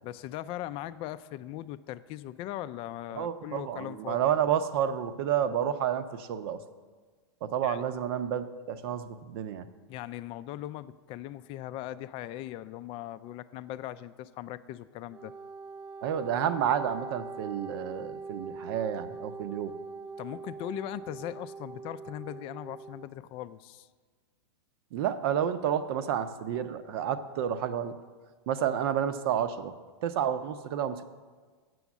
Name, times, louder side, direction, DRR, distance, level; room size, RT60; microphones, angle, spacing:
voice 1, 0.0-4.2 7.6-7.8 9.9-15.3 20.2-23.9, left 13 dB, 40° left, 13 dB, 0.4 m, -39 dB
voice 2, 3.1-6.6 7.4-9.7 16.0-19.7 24.9-27.9 28.5-29.7 30.0-31.0, right 9 dB, 60° right, 11 dB, 0.7 m, -30 dB
Wind instrument woodwind instrument, 15.0-23.1, right 4 dB, 30° right, 0.4 m, -43 dB
7.8 x 7.0 x 7.2 m, 1.4 s
hypercardioid pair, 115°, 14 cm